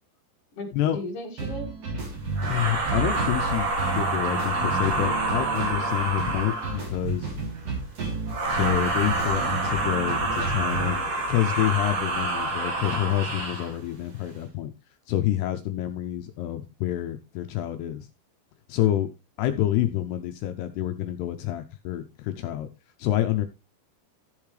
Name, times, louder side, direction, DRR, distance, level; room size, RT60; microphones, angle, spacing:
voice 1, 0.6-1.7, left 1 dB, 40° left, 1 dB, 2.6 m, -35 dB
sound 1, 1.4-11.0, right 4 dB, 35° right, 3.5 m, -32 dB
sound 2, 2.3-6.9 8.3-13.7, right 2 dB, 60° right, 1.4 m, -27 dB
voice 2, 2.5-7.3 8.5-14.7 15.1-18.1 18.7-19.1 19.4-22.7 23.0-23.5, left 13 dB, 80° left, 7 dB, 2.5 m, -28 dB
14.0 x 7.1 x 3.3 m, 0.26 s
omnidirectional pair, 5.3 m